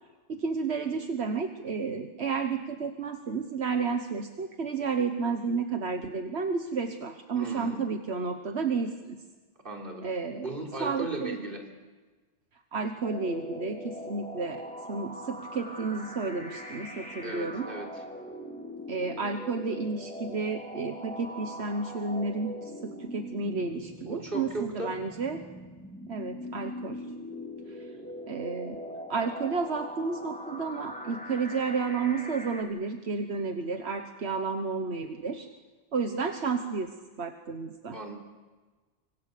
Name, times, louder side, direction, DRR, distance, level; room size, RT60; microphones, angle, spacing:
voice 1, 0.3-9.2 10.0-10.5 10.8-11.4 12.7-17.7 18.9-25.4 26.1-27.0 27.7-27.9 28.3-28.8 29.1-35.5 35.9-38.0, right 4 dB, 80° right, 6 dB, 1.5 m, -31 dB
voice 2, 7.3-7.9 9.6-10.1 10.4-11.6 17.2-17.9 24.1-25.0 37.9-38.2, right 2 dB, 55° right, 4 dB, 4.0 m, -36 dB
sound 1, 13.0-32.6, equal, 5° left, 3.4 m, -41 dB
26.0 x 25.0 x 6.8 m, 1.3 s
omnidirectional pair, 1.1 m